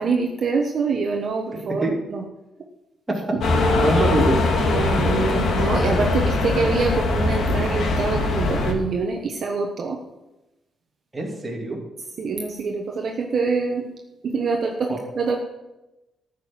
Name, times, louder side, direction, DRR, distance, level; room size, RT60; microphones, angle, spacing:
voice 1, 0.0-2.2 3.3-3.4 4.6-10.0 12.2-13.8 14.2-15.4, right 4 dB, 40° right, 2 dB, 1.1 m, -25 dB
sound 1, 3.4-8.7, left 2 dB, 55° left, 2.0 m, -21 dB
voice 2, 3.8-4.4 11.1-11.8 14.9-15.0, right 2 dB, 10° right, -1 dB, 2.4 m, -23 dB
14.0 x 6.1 x 7.5 m, 0.99 s
cardioid pair, 170°, 0 cm